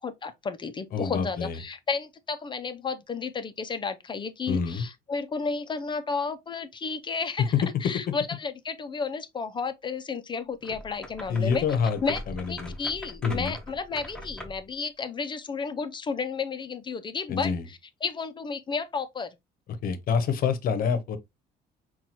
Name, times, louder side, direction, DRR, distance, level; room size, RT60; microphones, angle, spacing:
voice 1, 0.0-7.5 7.8-11.6 12.0-12.2 12.5-19.4, left 5 dB, 30° left, 0.4 m, -32 dB
voice 2, 0.9-1.6 4.5-4.9 8.1-8.2 11.3-12.0 12.3-12.7 13.2-13.5 17.3-17.6 19.8-21.2, left 6 dB, 60° left, 0.7 m, -27 dB
sound 1, 10.6-14.7, left 1 dB, 5° left, 0.8 m, -41 dB
5.6 x 2.3 x 2.9 m
cardioid pair, 110°, 17 cm